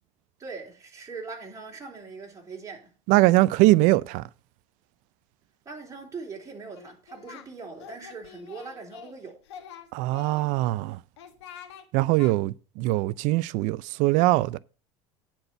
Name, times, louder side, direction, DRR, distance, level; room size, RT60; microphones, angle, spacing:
voice 1, 0.4-2.9 5.7-9.4, right 4 dB, 25° right, 3.6 m, -41 dB
voice 2, 3.1-4.2 9.9-11.0 11.9-14.6, right 19 dB, 65° right, 0.4 m, -22 dB
Singing, 6.8-7.5 7.8-9.1 9.4-10.7 11.2-11.8 12.2-12.3, left 8 dB, 85° left, 1.3 m, -46 dB
9.7 x 4.4 x 6.7 m
supercardioid pair, 90°, 14 cm